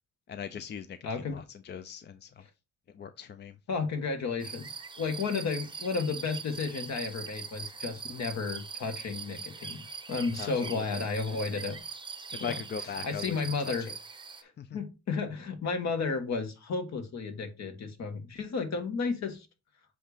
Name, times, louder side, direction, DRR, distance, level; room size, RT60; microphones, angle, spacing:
voice 1, 0.3-2.4 2.9-3.6 10.4-11.1 12.3-14.0 14.6-14.8, left 7 dB, 35° left, 0.5 m, -41 dB
voice 2, 1.0-1.4 3.7-11.8 12.4-12.5 13.0-13.9 14.4-19.5, left 4 dB, 60° left, 1.6 m, -33 dB
sound 1, 4.4-14.4, right 5 dB, 15° right, 0.7 m, -42 dB
7.8 x 2.7 x 5.0 m
cardioid pair, 90°, 30 cm